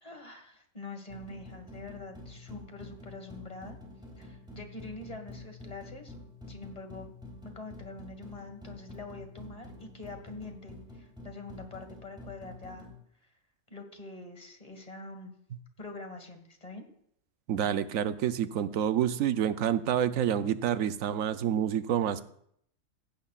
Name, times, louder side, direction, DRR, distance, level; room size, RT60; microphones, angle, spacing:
voice 1, 0.0-3.8 4.2-6.1 6.5-7.1 7.4-12.9 13.7-15.3 15.8-16.9, left 3 dB, 30° left, 5 dB, 1.7 m, -45 dB
sound 1, 1.1-13.0, left 2 dB, 5° right, 3.5 m, -48 dB
voice 2, 17.5-22.2, right 9 dB, 80° right, 12 dB, 1.1 m, -28 dB
15.5 x 15.5 x 2.4 m, 0.70 s
omnidirectional pair, 1.4 m